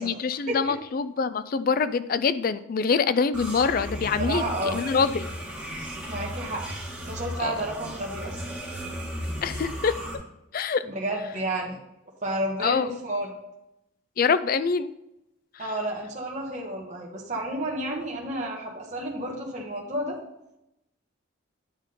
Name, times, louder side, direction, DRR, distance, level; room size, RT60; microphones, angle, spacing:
voice 1, 0.0-4.4 4.7-5.3 7.4-7.5 9.4-10.0 10.5-10.8 12.6-12.9 14.2-14.9 15.5-15.7, left 5 dB, 45° left, 13 dB, 0.3 m, -25 dB
sound 1, 3.3-10.2, equal, 5° right, 1.6 m, -35 dB
voice 2, 4.2-4.8 6.1-6.7 7.0-8.4 10.9-11.8 12.2-13.3 15.6-20.2, right 1 dB, 35° right, -3 dB, 1.3 m, -31 dB
9.6 x 3.7 x 5.3 m, 0.86 s
head